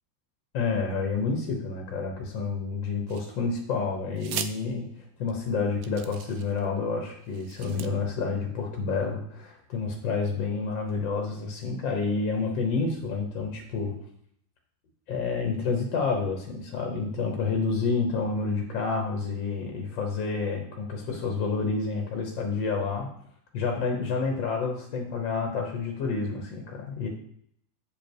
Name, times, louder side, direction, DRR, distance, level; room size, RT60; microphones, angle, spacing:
voice 1, 0.5-4.8 5.2-13.9 15.1-23.1 23.5-27.1, left 4 dB, 70° left, 2 dB, 1.8 m, -29 dB
sound 1, 3.1-3.6 4.2-4.5 5.3-5.4 5.8-6.6 7.2-7.9, right 9 dB, 90° right, 0.7 m, -38 dB
8.3 x 5.2 x 4.5 m, 0.67 s
omnidirectional pair, 2.2 m